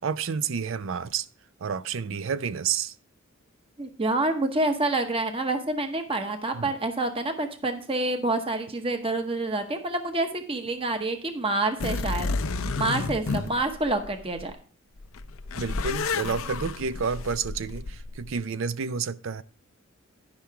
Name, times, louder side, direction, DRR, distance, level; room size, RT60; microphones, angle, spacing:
voice 1, 0.0-1.3 1.6-2.9 6.5-6.7 13.3-13.5 15.5-19.4, right 6 dB, 65° right, 0.4 m, -30 dB
voice 2, 3.8-12.3 12.8-14.5, right 2 dB, 25° right, 0.9 m, -27 dB
sound 1, 11.8-14.5 15.0-18.3, left 4 dB, 75° left, 0.6 m, -31 dB
10.5 x 5.7 x 4.6 m
head